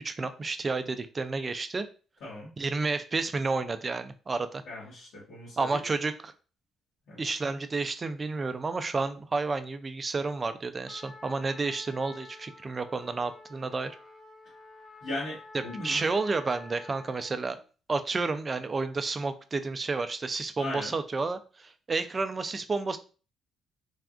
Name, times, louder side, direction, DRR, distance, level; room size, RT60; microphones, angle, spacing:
voice 1, 0.0-1.9 2.6-4.6 5.6-6.3 7.2-14.0 15.8-17.6 17.9-23.0, right 3 dB, 30° right, 10 dB, 0.3 m, -31 dB
voice 2, 4.7-5.8 7.1-7.2 15.0-16.0 20.6-20.9, left 2 dB, 90° left, -9 dB, 1.2 m, -38 dB
Trumpet, 10.9-17.4, left 3 dB, 40° left, 0.7 m, -49 dB
3.3 x 2.3 x 2.4 m, 0.36 s
cardioid pair, 90°, 0 cm